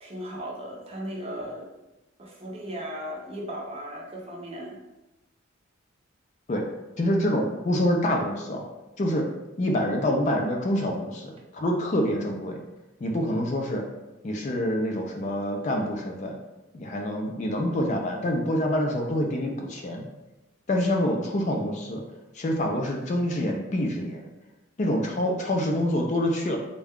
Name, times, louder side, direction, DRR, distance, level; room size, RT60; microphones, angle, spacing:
voice 1, 0.0-1.7 2.2-4.8, equal, 30° right, -2 dB, 0.6 m, -36 dB
voice 2, 7.0-8.7 9.0-9.3 9.6-12.6 13.0-13.8 14.2-16.4 16.7-20.1 20.7-22.0 22.3-24.2 24.8-26.6, left 1 dB, 35° left, 1 dB, 0.4 m, -26 dB
3.5 x 2.2 x 3.5 m, 1.0 s
head